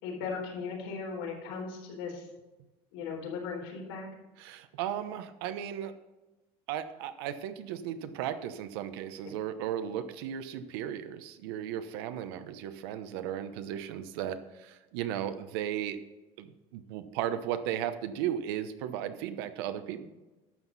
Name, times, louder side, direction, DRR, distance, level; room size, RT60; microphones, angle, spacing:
voice 1, 0.0-2.2 2.9-4.1, left 5 dB, 85° left, -1 dB, 4.0 m, -37 dB
voice 2, 4.4-5.9 6.7-16.0 16.4-20.0, right 10 dB, 90° right, 10 dB, 0.9 m, -35 dB
12.0 x 7.4 x 4.1 m, 1.1 s
cardioid pair, 170°, 12 cm